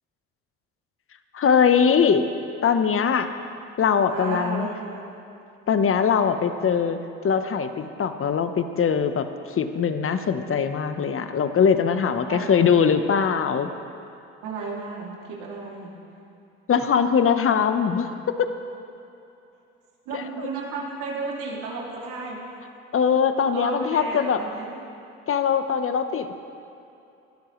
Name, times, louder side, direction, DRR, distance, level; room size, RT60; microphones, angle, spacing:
voice 1, 1.3-2.3 2.6-3.3 3.8-4.7 5.7-7.0 7.2-13.7 16.7-18.1 18.4-18.5 20.1-20.5 22.9-24.4 25.3-26.3, left 7 dB, 45° left, 9 dB, 1.1 m, -21 dB
voice 2, 4.0-5.1 12.2-12.7 14.4-15.9 20.1-22.4 23.5-24.8, right 4 dB, 80° right, -3 dB, 2.8 m, -33 dB
21.0 x 12.5 x 3.2 m, 2.8 s
supercardioid pair, 60°, 31 cm